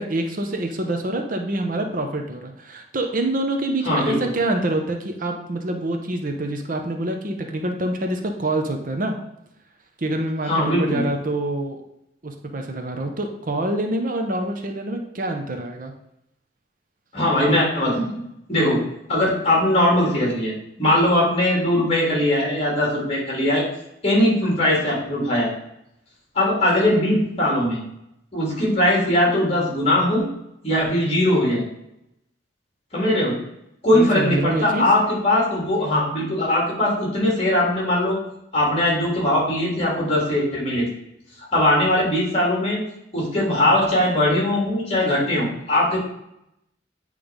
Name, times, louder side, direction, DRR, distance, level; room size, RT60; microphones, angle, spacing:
voice 1, 0.0-9.2 10.0-11.8 12.2-15.9 33.9-34.9, right 1 dB, 50° right, 4 dB, 0.8 m, -26 dB
voice 2, 3.8-4.3 10.4-11.1 17.1-18.2 18.5-18.8 19.1-23.6 24.0-25.5 26.3-27.8 28.3-30.3 30.6-31.6 32.9-33.4 33.8-38.2 38.5-40.9 41.4-42.8 43.1-46.0, left 1 dB, 35° left, -3 dB, 2.7 m, -20 dB
8.9 x 3.3 x 5.1 m, 0.80 s
head